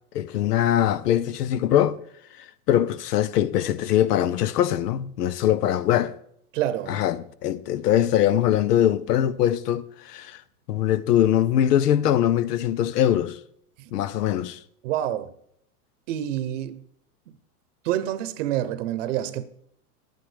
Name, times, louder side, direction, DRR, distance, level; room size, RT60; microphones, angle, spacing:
voice 1, 0.1-2.0 2.7-6.1 6.9-10.4 10.7-13.4 13.9-14.6, left 11 dB, 85° left, 0.9 m, -22 dB
voice 2, 6.5-7.0 13.8-13.9 14.8-15.3 16.1-16.8 17.8-19.4, right 12 dB, 55° right, 0.9 m, -27 dB
10.5 x 9.4 x 5.0 m
supercardioid pair, 155°, 46 cm